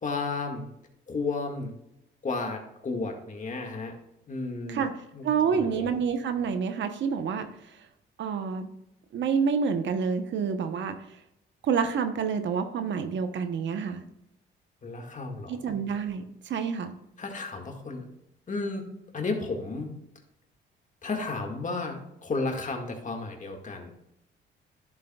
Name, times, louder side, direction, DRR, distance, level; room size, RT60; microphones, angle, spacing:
voice 1, 0.0-0.7 1.1-1.7 2.2-3.9 4.3-4.8 5.1-5.9 14.8-15.6 17.2-18.1 18.5-18.8 19.1-19.9 21.0-23.9, left 3 dB, 40° left, 3 dB, 1.9 m, -33 dB
voice 2, 5.2-7.5 8.2-8.7 9.1-11.0 11.6-14.0 15.5-16.9, right 6 dB, 70° right, 8 dB, 1.0 m, -28 dB
11.0 x 7.1 x 2.4 m, 0.83 s
cardioid pair, 90°, 20 cm